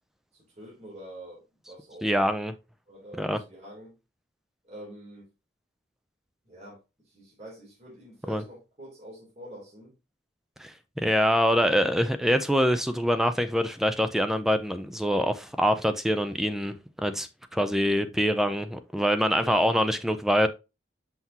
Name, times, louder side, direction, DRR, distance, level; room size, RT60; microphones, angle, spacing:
voice 1, 0.3-2.1 2.9-3.9 4.6-5.3 6.4-9.9 19.3-20.0, right 1 dB, 35° right, 2.9 m, -46 dB
voice 2, 2.0-2.5 3.2-3.4 8.3-8.4 10.6-20.5, equal, ahead, 0.4 m, -25 dB
5.8 x 5.8 x 2.8 m
head